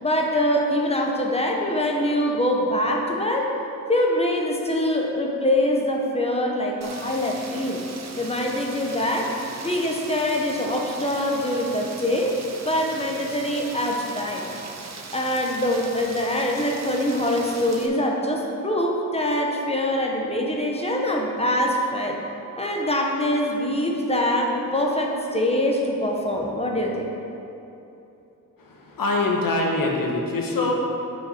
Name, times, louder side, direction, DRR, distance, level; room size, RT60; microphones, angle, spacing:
voice 1, 0.0-3.5 3.9-7.8 8.2-9.3 9.6-12.3 12.6-14.4 15.1-22.2 22.6-27.1, left 1 dB, 20° left, 0 dB, 0.9 m, -24 dB
Rain, 6.8-17.9, right 4 dB, 50° right, 0.8 m, -39 dB
voice 2, 28.8-30.7, left 2 dB, 80° left, 0 dB, 1.3 m, -23 dB
11.0 x 5.5 x 4.3 m, 2.9 s
wide cardioid pair, 180°, 34 cm